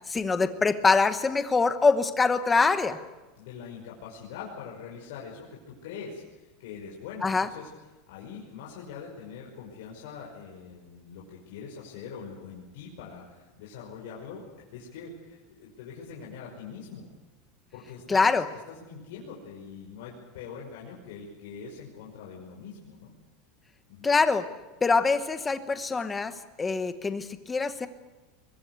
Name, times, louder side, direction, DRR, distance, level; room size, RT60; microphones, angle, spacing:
voice 1, 0.1-3.0 7.2-7.5 18.1-18.4 24.0-24.5 24.8-27.9, left 4 dB, 10° left, 10 dB, 1.1 m, -24 dB
voice 2, 3.4-7.7 8.1-14.4 14.7-17.1 17.7-18.3 18.7-23.1 23.9-24.1, left 6 dB, 65° left, -3 dB, 5.8 m, -43 dB
23.0 x 22.5 x 8.2 m, 1.1 s
supercardioid pair, 180°, 0 cm